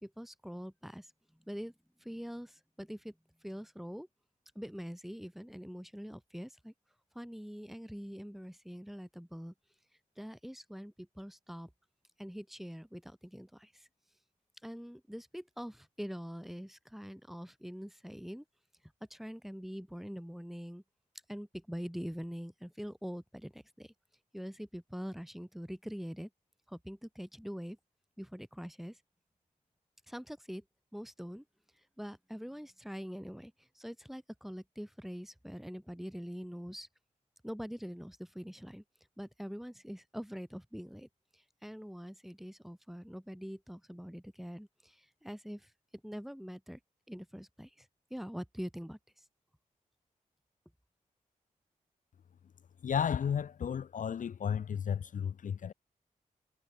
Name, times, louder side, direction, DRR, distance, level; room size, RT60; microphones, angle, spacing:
voice 1, 0.0-1.1 1.5-1.7 2.0-3.1 3.4-4.1 4.6-6.7 7.1-9.5 10.2-11.7 12.2-13.9 14.6-18.4 19.1-20.8 21.3-23.9 24.3-26.3 26.7-27.8 28.2-29.0 30.1-30.6 30.9-31.4 32.0-36.9 37.4-38.8 39.2-45.7 46.0-46.8 47.1-47.9 48.1-49.0, equal, ahead, 2.4 m, -44 dB
voice 2, 52.8-55.7, left 8 dB, 65° left, 0.6 m, -33 dB
cardioid pair, 65°, 14 cm